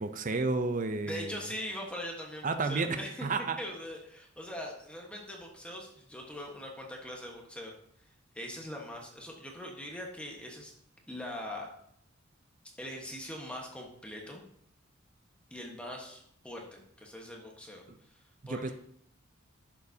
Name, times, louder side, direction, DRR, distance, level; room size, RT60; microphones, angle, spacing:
voice 1, 0.0-1.4 2.4-3.6 17.9-18.0 18.5-18.7, right 3 dB, 40° right, 9 dB, 0.6 m, -31 dB
voice 2, 1.0-3.2 3.6-7.7 8.3-10.7 11.1-11.7 12.8-14.4 15.5-17.8 18.1-18.2 18.5-18.7, left 1 dB, 5° left, 0 dB, 1.3 m, -42 dB
11.0 x 7.3 x 2.8 m, 0.68 s
head